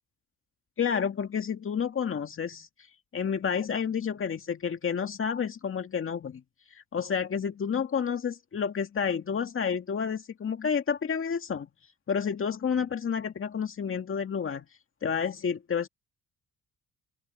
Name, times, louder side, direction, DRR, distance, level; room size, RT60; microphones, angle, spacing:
voice 1, 0.8-2.7 3.1-6.4 6.7-11.7 12.1-14.7 15.0-15.9, left 7 dB, 45° left, 2.1 m, -30 dB
open air
cardioid pair, 90°, 30 cm